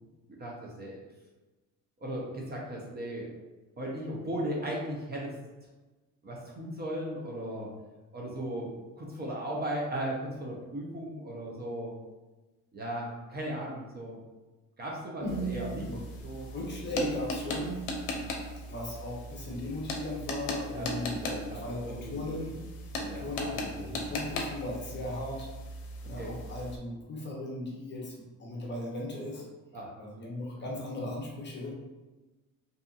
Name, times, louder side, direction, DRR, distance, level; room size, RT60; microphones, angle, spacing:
voice 1, 0.3-1.0 2.0-3.3 3.8-5.3 6.2-7.7 8.1-11.9 12.7-14.2 14.8-15.9 16.2-16.5 18.1-18.2 20.7-22.2 23.0-24.1 26.2-26.3 29.7-29.9, right 1 dB, 30° right, -3 dB, 0.6 m, -37 dB
voice 2, 15.2-15.6 15.9-16.0 16.5-17.8 18.7-22.6 23.1-23.6 23.9-25.5 26.0-29.4 30.0-31.7, left 1 dB, 30° left, -2 dB, 0.7 m, -37 dB
sound 1, 15.3-26.8, left 1 dB, 75° left, 0.6 m, -38 dB
2.7 x 2.5 x 2.4 m, 1.2 s
cardioid pair, 100°, 35 cm